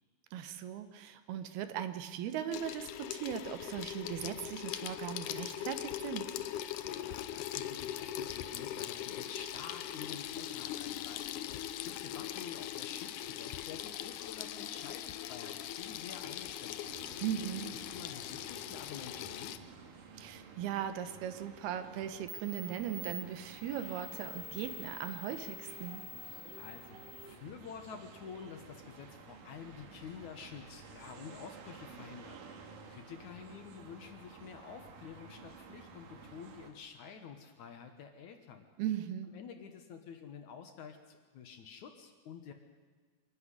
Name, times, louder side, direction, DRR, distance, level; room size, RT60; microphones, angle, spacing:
voice 1, 0.3-6.3 17.2-17.8 20.1-26.0 38.8-39.3, right 10 dB, 85° right, 10 dB, 3.1 m, -38 dB
Water tap faucet / Sink (filling or washing), 2.5-19.6, left 11 dB, 80° left, 1.8 m, -41 dB
voice 2, 7.0-17.0 17.7-19.6 26.6-32.4 32.8-38.7 39.3-42.5, left 7 dB, 65° left, 6 dB, 2.3 m, -49 dB
sound 1, 16.8-36.7, right 5 dB, 65° right, 3.1 m, -52 dB
sound 2, 21.8-21.9 22.3-27.3, left 2 dB, 35° right, 1.9 m, -47 dB
25.0 x 12.0 x 9.8 m, 1.5 s
omnidirectional pair, 4.4 m